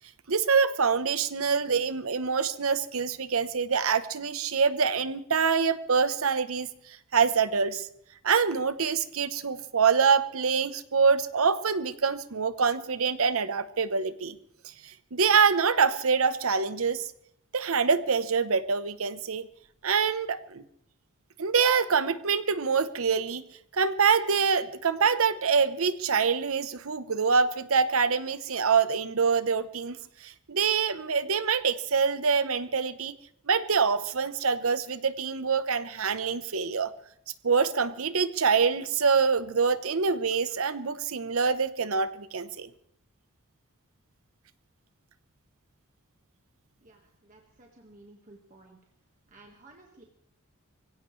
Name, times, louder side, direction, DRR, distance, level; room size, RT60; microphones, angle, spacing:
voice 1, 0.3-7.9 8.2-14.4 14.8-17.1 17.5-19.5 19.8-20.6 21.4-23.4 23.7-33.1 33.5-36.9 37.4-42.7, right 5 dB, 70° right, 13 dB, 0.9 m, -25 dB
voice 2, 46.8-48.8 49.3-50.0, right 2 dB, 35° right, 1 dB, 1.6 m, -54 dB
23.5 x 16.5 x 3.2 m, 0.72 s
head